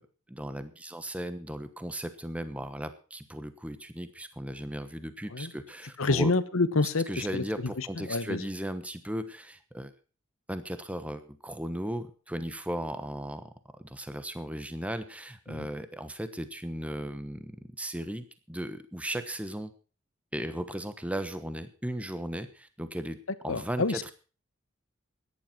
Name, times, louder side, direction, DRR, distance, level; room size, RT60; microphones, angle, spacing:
voice 1, 0.3-6.3 7.1-9.9 10.5-13.5 13.8-19.7 20.3-23.2 23.4-24.1, right 1 dB, 5° right, 11 dB, 1.1 m, -36 dB
voice 2, 6.0-7.4 7.8-8.4 15.5-15.7 23.5-24.0, left 3 dB, 80° left, 15 dB, 1.1 m, -28 dB
13.5 x 10.5 x 6.0 m, 0.37 s
head